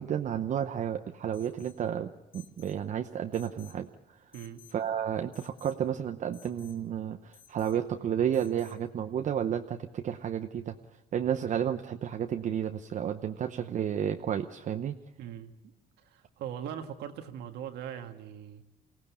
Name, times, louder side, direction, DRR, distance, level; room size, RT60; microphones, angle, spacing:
voice 1, 0.0-3.9 4.7-10.7 11.1-14.9, right 9 dB, 45° right, 6 dB, 0.8 m, -31 dB
Alarm, 1.3-1.8 2.3-2.8 3.3-3.8 4.3-4.8 5.3-5.8 6.3-6.8 7.3-7.8 8.3-8.8, left 8 dB, 55° left, 2.1 m, -57 dB
voice 2, 4.3-4.6 15.2-15.5 16.0-18.6, right 9 dB, 80° right, 6 dB, 1.7 m, -40 dB
23.0 x 16.5 x 8.4 m, 1.0 s
cardioid pair, 110°, 17 cm